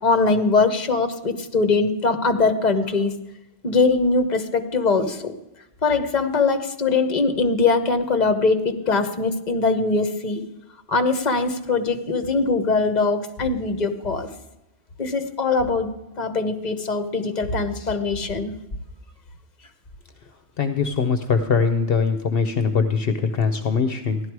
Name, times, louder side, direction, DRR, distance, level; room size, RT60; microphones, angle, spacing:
voice 1, 0.0-3.1 3.6-5.3 5.8-10.4 10.9-14.3 15.0-15.9 16.2-18.5, left 4 dB, 45° left, 8 dB, 1.2 m, -21 dB
voice 2, 20.6-24.2, left 5 dB, 65° left, 8 dB, 1.0 m, -22 dB
15.5 x 11.5 x 4.7 m, 0.97 s
omnidirectional pair, 1.1 m